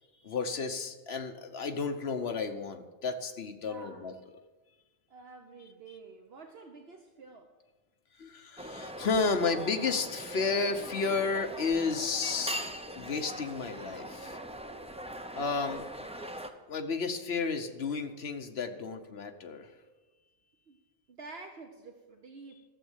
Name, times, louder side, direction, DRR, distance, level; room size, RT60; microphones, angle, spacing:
voice 1, 0.2-4.1 8.2-12.6 13.0-14.4 15.3-15.8 16.7-19.7, left 4 dB, 65° left, 7 dB, 1.2 m, -32 dB
voice 2, 3.6-4.2 5.1-7.5 20.7-20.8 21.1-22.6, right 4 dB, 65° right, 3 dB, 1.2 m, -49 dB
sound 1, 8.6-16.5, equal, 5° right, 0.5 m, -41 dB
13.0 x 7.3 x 8.1 m, 1.2 s
omnidirectional pair, 1.2 m